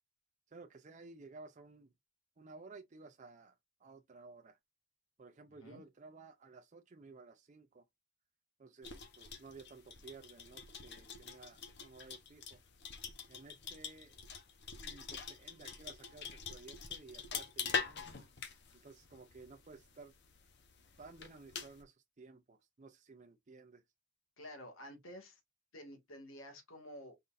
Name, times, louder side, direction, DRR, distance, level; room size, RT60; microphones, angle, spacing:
voice 1, 0.5-1.9 2.4-3.6 3.8-4.6 5.2-7.8 8.6-12.6 13.3-14.2 14.8-18.1 18.7-20.1 21.0-23.8, right 3 dB, 35° right, 0.5 m, -55 dB
sound 1, 8.8-21.8, left 6 dB, 55° left, 0.9 m, -45 dB
voice 2, 24.4-25.4 25.7-27.2, equal, 85° left, 1.8 m, -51 dB
5.2 x 4.0 x 2.5 m
head